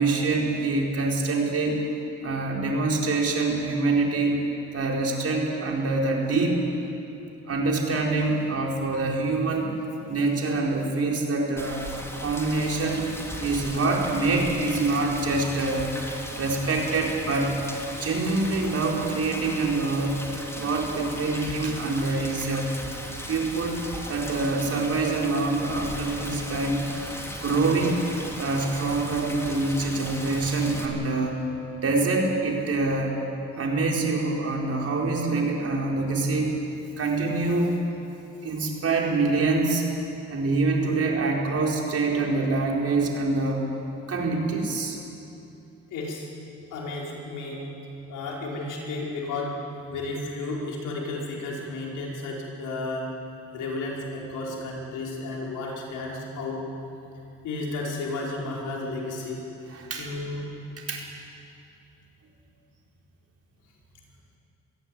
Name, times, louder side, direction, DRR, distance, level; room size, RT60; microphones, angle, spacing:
voice 1, 0.0-1.8 2.2-4.5 4.7-6.6 7.5-9.7 10.1-11.8 12.1-13.1 13.4-15.9 16.3-17.6 18.0-20.2 20.5-22.7 23.3-23.8 24.1-26.8 27.4-28.0 28.4-31.4 31.8-33.2 33.6-36.6 37.0-37.8 38.4-39.8 40.3-43.6 44.1-45.0 59.7-60.1 60.8-61.1, right 3 dB, 50° right, -1 dB, 4.9 m, -25 dB
Rain, 11.6-30.9, equal, 10° left, 3.3 m, -37 dB
voice 2, 45.9-46.3 46.7-47.7 48.1-49.5 49.9-53.1 53.5-56.6 57.4-59.5 60.0-60.5, left 2 dB, 85° left, -2 dB, 5.3 m, -33 dB
23.0 x 15.5 x 9.5 m, 2.8 s
cardioid pair, 90°, 30 cm